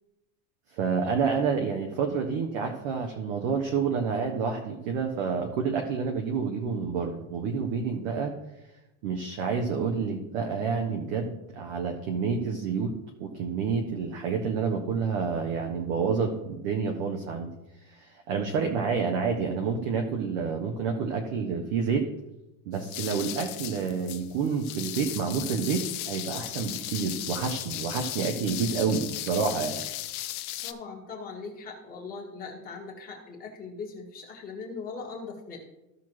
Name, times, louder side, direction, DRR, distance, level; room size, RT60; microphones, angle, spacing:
voice 1, 0.7-8.3 9.0-12.9 13.2-17.5 18.0-22.1 22.7-29.8, right 5 dB, 25° right, 3 dB, 0.4 m, -29 dB
sound 1, 22.7-30.7, left 14 dB, 70° left, 0.8 m, -36 dB
voice 2, 30.6-35.6, left 4 dB, 20° left, 0 dB, 1.4 m, -40 dB
14.5 x 5.8 x 3.0 m, 0.97 s
supercardioid pair, 180°, 45 cm